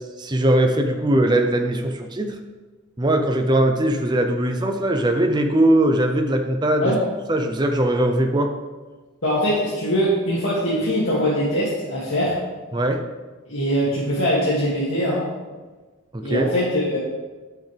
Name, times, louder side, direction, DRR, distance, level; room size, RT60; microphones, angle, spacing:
voice 1, 0.0-2.3 3.0-6.9 7.3-8.5 12.7-13.0 16.1-16.5, right 1 dB, 20° right, 4 dB, 0.6 m, -20 dB
voice 2, 9.2-12.3 13.5-15.2 16.2-17.0, equal, 65° left, -9 dB, 2.3 m, -22 dB
12.0 x 6.4 x 3.4 m, 1.3 s
head